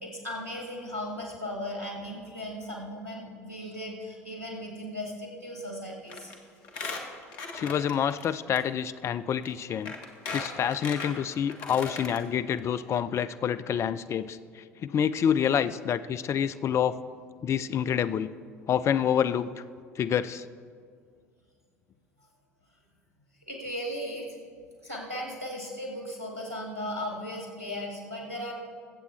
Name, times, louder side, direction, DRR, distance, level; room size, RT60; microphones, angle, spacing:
voice 1, 0.0-6.3 23.5-24.3 24.8-28.5, equal, 85° right, -1 dB, 2.0 m, -37 dB
Squeak, 6.1-6.3 6.6-8.3 8.6-8.7 9.4-9.5 9.9-12.2 12.6-12.7 12.9-13.0, left 4 dB, 55° left, 1.3 m, -37 dB
voice 2, 7.5-9.9 10.3-16.9 17.4-18.3 18.7-19.5 20.0-20.4, left 8 dB, 35° left, 13 dB, 0.4 m, -27 dB
22.0 x 8.1 x 3.3 m, 2.1 s
figure-of-eight pair, 60°, 8 cm